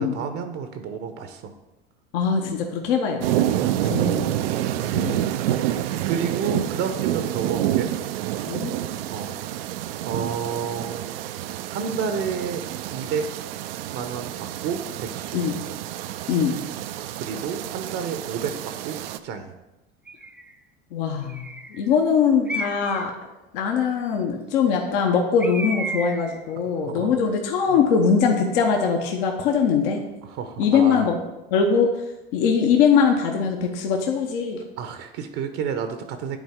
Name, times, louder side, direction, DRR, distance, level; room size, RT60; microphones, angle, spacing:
voice 1, 0.0-1.5 3.6-4.2 6.0-8.0 9.1-9.6 10.0-11.0 11.7-12.6 12.9-13.3 13.9-15.4 17.2-19.5 26.8-27.1 27.7-27.8 30.2-31.1 34.8-36.4, right 6 dB, 55° right, 8 dB, 0.8 m, -30 dB
voice 2, 2.1-3.2 3.9-4.3 4.9-5.3 8.5-8.7 15.3-15.6 16.3-16.6 20.9-23.1 23.5-30.0 30.6-31.2 31.5-31.9 32.3-34.6, left 6 dB, 65° left, 2 dB, 0.9 m, -21 dB
sound 1, 3.2-19.2, right 12 dB, 80° right, 0.4 m, -28 dB
Bird, 20.1-20.5 21.3-21.8 22.5-23.1 25.4-26.4, equal, 5° right, 0.3 m, -32 dB
9.5 x 4.0 x 3.6 m, 1.0 s
hypercardioid pair, 85°, 29 cm